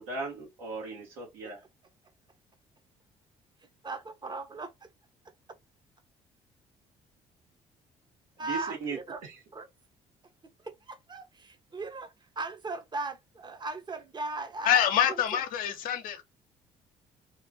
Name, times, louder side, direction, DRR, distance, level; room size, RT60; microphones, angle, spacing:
voice 1, 0.0-1.6 8.4-9.4, right 4 dB, 80° right, 1.6 m, -38 dB
voice 2, 3.8-4.7 8.4-9.2 9.5-9.7 10.6-14.8 15.3-15.4, right 3 dB, 30° right, 0.9 m, -38 dB
voice 3, 14.6-16.2, left 9 dB, 70° left, 0.7 m, -26 dB
3.0 x 2.5 x 3.6 m
hypercardioid pair, 55°, 15 cm